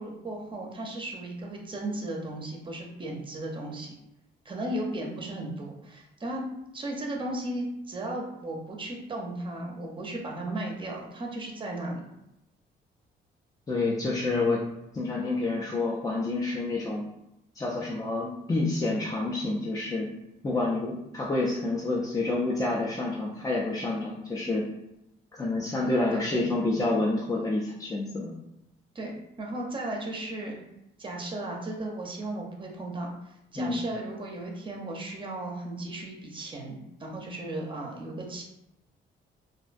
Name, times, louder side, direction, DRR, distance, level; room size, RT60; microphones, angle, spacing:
voice 1, 0.0-3.9 4.4-6.4 6.7-12.0 26.1-26.5 28.9-29.1 29.4-30.6 31.0-38.4, right 1 dB, 25° right, 0 dB, 0.6 m, -35 dB
voice 2, 13.7-14.6 14.9-17.1 17.5-20.1 20.4-24.6 25.3-28.3 33.5-33.8, left 2 dB, 15° left, -5 dB, 0.4 m, -28 dB
2.5 x 2.1 x 2.5 m, 0.86 s
cardioid pair, 90°, 20 cm